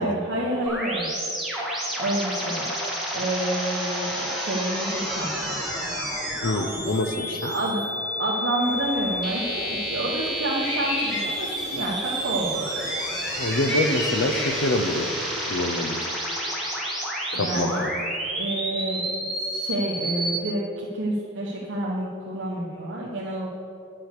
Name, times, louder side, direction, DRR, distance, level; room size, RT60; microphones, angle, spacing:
voice 1, 0.0-1.5 2.0-2.9 3.1-5.6 7.4-7.8 8.2-12.6 17.3-17.8 18.4-19.1 19.5-23.5, right 1 dB, 85° right, -6 dB, 1.4 m, -29 dB
sound 1, 0.7-20.4, equal, ahead, 2.2 m, -30 dB
voice 2, 6.4-7.5 13.4-15.1 15.5-16.1 17.3-17.9, left 2 dB, 85° left, 8 dB, 0.7 m, -26 dB
sound 2, 8.6-15.1, left 1 dB, 65° left, 1.8 m, -35 dB
9.6 x 7.5 x 6.7 m, 2.7 s
head